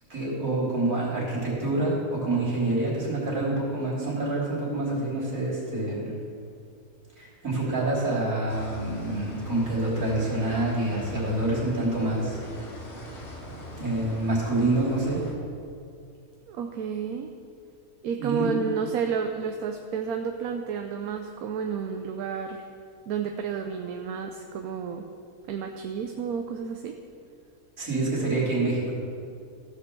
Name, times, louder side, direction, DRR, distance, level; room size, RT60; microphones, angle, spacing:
voice 1, 0.1-6.1 7.2-12.4 13.8-15.2 18.2-18.6 27.8-29.0, right 2 dB, 60° right, -6 dB, 3.7 m, -27 dB
sound 1, 8.5-15.4, left 1 dB, 45° left, 1.8 m, -41 dB
voice 2, 16.5-17.3 18.0-22.7 23.1-25.1 25.5-27.0, right 6 dB, 75° right, 4 dB, 1.1 m, -31 dB
15.0 x 5.3 x 6.8 m, 2.4 s
omnidirectional pair, 1.6 m